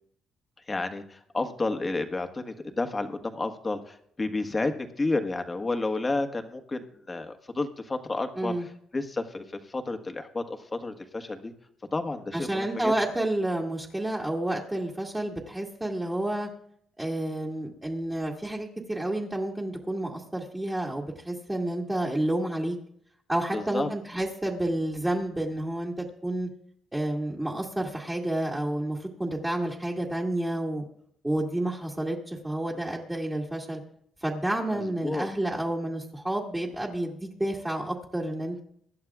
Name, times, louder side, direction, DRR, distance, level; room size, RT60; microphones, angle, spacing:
voice 1, 0.7-8.5 8.9-11.5 11.9-12.9 23.5-23.9 34.7-35.3, left 2 dB, 25° left, 6 dB, 1.5 m, -31 dB
voice 2, 12.3-16.5 17.0-22.8 23.3-26.5 26.9-30.8 31.2-33.8 34.2-38.6, right 1 dB, 15° right, -3 dB, 2.0 m, -30 dB
24.0 x 11.0 x 2.4 m, 0.67 s
cardioid pair, 90°, 0 cm